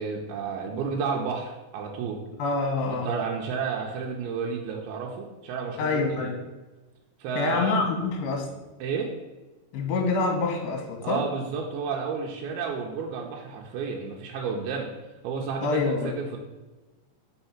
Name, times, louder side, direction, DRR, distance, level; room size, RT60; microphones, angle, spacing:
voice 1, 0.0-2.2 2.9-6.4 7.2-7.7 8.8-9.1 11.0-14.9 15.2-16.4, right 5 dB, 80° right, -1 dB, 2.5 m, -31 dB
voice 2, 2.4-3.1 5.8-6.4 7.4-8.6 9.7-11.2 15.6-16.1, left 3 dB, 75° left, 2 dB, 2.3 m, -26 dB
5.6 x 3.7 x 5.6 m, 1.2 s
omnidirectional pair, 4.6 m